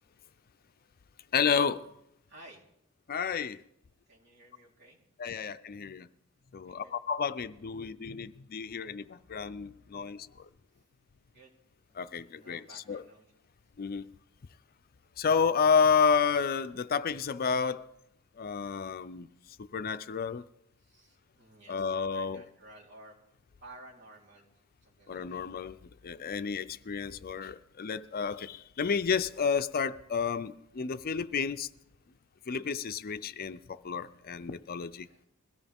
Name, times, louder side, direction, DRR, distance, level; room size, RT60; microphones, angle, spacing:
voice 1, 1.3-1.8 3.1-3.6 5.2-6.1 6.5-10.3 12.0-13.0 13.8-14.0 15.2-17.8 18.4-19.3 19.7-20.4 21.7-22.4 25.1-25.8 26.0-31.7 32.5-35.1, left 6 dB, 45° left, 0.5 m, -30 dB
voice 2, 2.3-2.6 4.1-5.0 6.6-6.9 11.3-11.5 11.9-12.0 12.3-13.3 20.8-23.1 23.6-25.4 26.0-26.2 35.0-35.2, right 2 dB, 55° right, 3.8 m, -54 dB
21.5 x 16.0 x 3.5 m
head